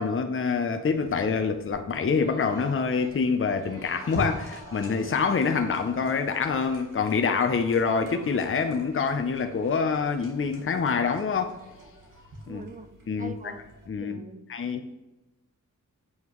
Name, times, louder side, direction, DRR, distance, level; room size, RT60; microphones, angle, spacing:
voice 1, 0.0-11.6 12.5-12.6 13.1-14.2 14.5-14.9, left 5 dB, 45° left, 7 dB, 0.6 m, -26 dB
sound 1, 0.9-13.9, equal, 90° right, 1.8 m, -44 dB
voice 2, 12.5-12.9 13.2-13.6 14.0-14.4 14.8-14.9, right 3 dB, 25° right, 10 dB, 0.5 m, -42 dB
7.9 x 5.4 x 3.1 m, 1.0 s
wide cardioid pair, 115°, 31 cm